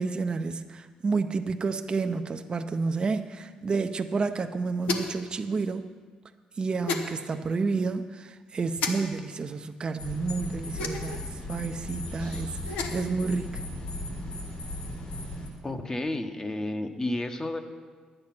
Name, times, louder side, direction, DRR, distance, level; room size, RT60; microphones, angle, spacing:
voice 1, 0.0-5.8 6.6-13.6, right 4 dB, 35° right, 7 dB, 0.6 m, -30 dB
sound 1, 4.8-5.3 6.9-7.1 8.8-8.9 10.8-11.2 12.6-13.1, left 4 dB, 85° left, 0.9 m, -31 dB
sound 2, 10.0-15.5, left 1 dB, 65° left, 3.7 m, -37 dB
voice 2, 15.6-17.6, left 1 dB, 25° left, 7 dB, 1.0 m, -31 dB
10.5 x 9.0 x 6.0 m, 1.5 s
cardioid pair, 75°, 2 cm